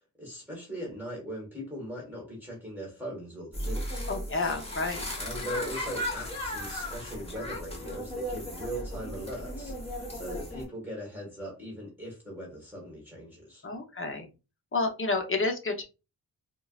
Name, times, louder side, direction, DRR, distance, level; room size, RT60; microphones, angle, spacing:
voice 1, 0.2-4.1 5.2-13.6, equal, 5° right, 1.4 m, -40 dB
sound 1, 3.5-10.6, equal, 15° left, 1.2 m, -36 dB
voice 2, 4.1-5.1 13.6-14.3 14.7-15.8, left 3 dB, 35° left, 0.8 m, -30 dB
4.4 x 2.1 x 2.4 m
wide cardioid pair, 125°, 37 cm